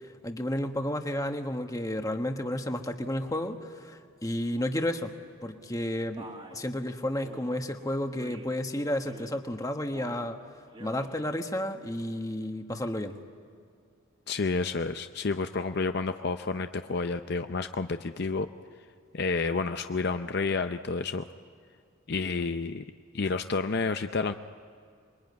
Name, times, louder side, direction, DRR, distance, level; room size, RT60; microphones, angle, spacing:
voice 1, 0.2-5.1 5.4-10.4 10.8-13.2, left 1 dB, 15° left, 5 dB, 1.3 m, -32 dB
Male speech man speaking, 6.2-6.6 7.2-7.6 8.2-8.6 9.0-9.4 9.8-10.3 10.7-11.1, right 2 dB, 25° right, 1.9 m, -47 dB
voice 2, 14.3-18.5 19.1-21.2 22.1-22.8 23.1-24.3, left 4 dB, 50° left, 8 dB, 0.6 m, -30 dB
26.5 x 22.5 x 9.6 m, 2.3 s
head